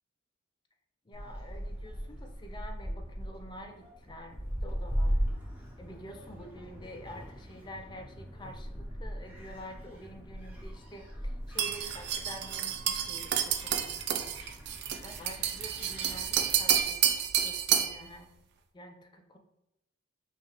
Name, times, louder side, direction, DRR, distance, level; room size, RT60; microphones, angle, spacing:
voice 1, 1.1-5.2 5.8-14.4 15.0-17.0 17.4-18.3 18.7-19.4, equal, 20° left, 4 dB, 0.4 m, -48 dB
Gull seagull, 1.1-16.8, equal, 10° right, 1.0 m, -39 dB
sound 1, 11.6-18.0, right 9 dB, 55° right, 0.4 m, -30 dB
5.3 x 2.4 x 3.1 m, 0.86 s
head